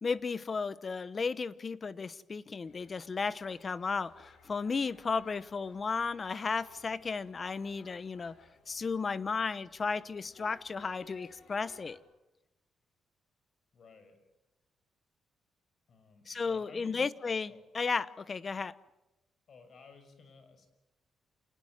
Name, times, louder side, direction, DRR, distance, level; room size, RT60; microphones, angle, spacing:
voice 1, 0.0-8.3 8.7-12.0 16.3-18.8, left 4 dB, 35° left, 1.0 m, -34 dB
sound 1, 2.6-12.0, left 4 dB, 70° left, 7.5 m, -60 dB
voice 2, 13.7-14.2 15.9-17.1 17.5-17.6 19.5-20.7, left 4 dB, 50° left, 6.3 m, -55 dB
28.0 x 20.0 x 9.4 m
cardioid pair, 125°, 0 cm